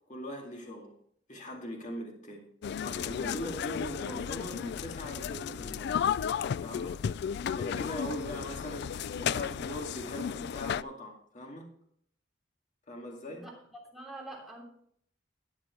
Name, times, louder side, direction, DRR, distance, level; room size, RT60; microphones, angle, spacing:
voice 1, 0.1-0.9 1.3-2.5 2.8-6.0 6.6-7.0 7.6-11.7 12.9-13.4, left 1 dB, 40° left, 0 dB, 2.2 m, -40 dB
sound 1, 2.6-10.8, left 8 dB, 65° left, 0.3 m, -34 dB
voice 2, 13.9-14.6, right 2 dB, ahead, -2 dB, 3.2 m, -45 dB
13.0 x 9.5 x 3.2 m, 0.64 s
head